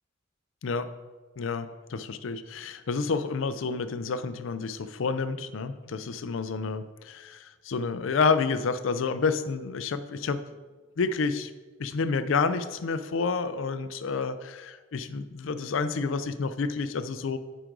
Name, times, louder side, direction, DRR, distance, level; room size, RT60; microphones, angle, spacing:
voice 1, 1.4-10.4 11.0-11.5 11.8-17.4, left 4 dB, 75° left, 12 dB, 0.5 m, -29 dB
9.3 x 5.0 x 3.8 m, 1.3 s
head